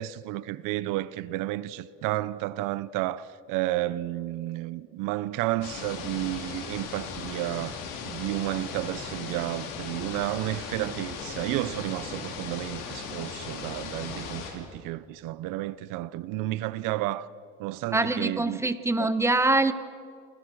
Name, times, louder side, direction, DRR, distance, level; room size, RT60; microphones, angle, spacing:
voice 1, 0.0-17.3 17.6-18.6 19.0-19.1, right 16 dB, 85° right, 0.8 m, -32 dB
sound 1, 5.6-14.5, left 6 dB, 80° left, 5.5 m, -37 dB
voice 2, 17.9-19.7, right 2 dB, 10° right, 1.3 m, -24 dB
29.0 x 28.5 x 6.4 m
cardioid pair, 115°, 31 cm